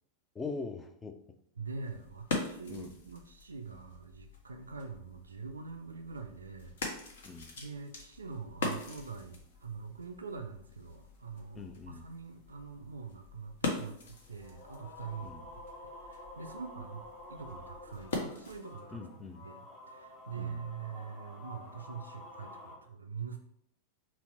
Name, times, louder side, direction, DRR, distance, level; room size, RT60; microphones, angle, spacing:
voice 1, 0.3-1.2 2.7-3.0 7.2-7.5 11.5-12.1 15.2-15.5 18.9-19.4 20.4-20.6, left 4 dB, 15° left, 7 dB, 0.4 m, -42 dB
voice 2, 1.6-6.8 7.6-15.3 16.0-23.4, right 5 dB, 75° right, 5 dB, 0.3 m, -44 dB
sound 1, 1.7-18.9, left 3 dB, 60° left, 0.7 m, -42 dB
sound 2, 5.7-5.9 6.3-6.4 6.6-22.8, left 1 dB, 30° left, 0.9 m, -51 dB
4.1 x 2.1 x 4.2 m, 0.70 s
figure-of-eight pair, 90°, 0 cm